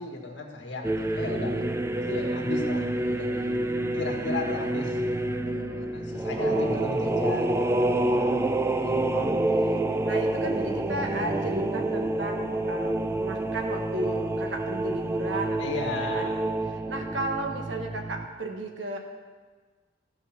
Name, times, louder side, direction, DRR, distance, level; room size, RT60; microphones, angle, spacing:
voice 1, 0.0-1.5 2.1-3.5 3.9-5.2 5.4-8.5 8.8-9.0 15.6-16.4, left 2 dB, 75° left, 1 dB, 1.6 m, -35 dB
sound 1, 0.8-18.3, right 1 dB, 15° right, 0.4 m, -28 dB
voice 2, 6.4-7.1 9.1-19.0, right 1 dB, 70° right, 3 dB, 1.3 m, -35 dB
13.5 x 5.4 x 5.9 m, 1.4 s
head